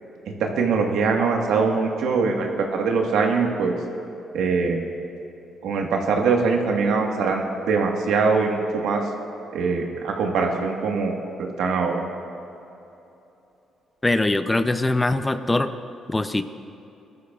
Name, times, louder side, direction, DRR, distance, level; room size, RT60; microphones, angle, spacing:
voice 1, 0.4-3.7 4.3-4.8 5.6-9.0 9.5-11.9, right 4 dB, 80° right, 1 dB, 1.5 m, -22 dB
voice 2, 14.0-15.7 16.1-16.4, left 2 dB, 15° left, 10 dB, 0.5 m, -22 dB
19.5 x 13.5 x 2.4 m, 2.9 s
cardioid pair, 90°, 0 cm